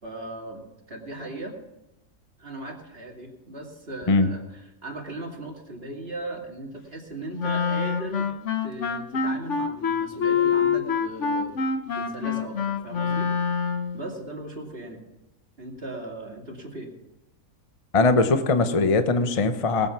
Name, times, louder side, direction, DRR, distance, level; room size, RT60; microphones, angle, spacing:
voice 1, 0.0-1.6 2.4-8.3 8.6-13.3 13.9-15.0 15.6-16.9, right 2 dB, 40° right, 0 dB, 2.7 m, -38 dB
Wind instrument woodwind instrument, 7.4-14.0, left 6 dB, 60° left, 1.2 m, -26 dB
voice 2, 17.9-19.9, left 3 dB, 30° left, 9 dB, 0.8 m, -20 dB
19.0 x 8.4 x 5.9 m, 0.92 s
omnidirectional pair, 1.5 m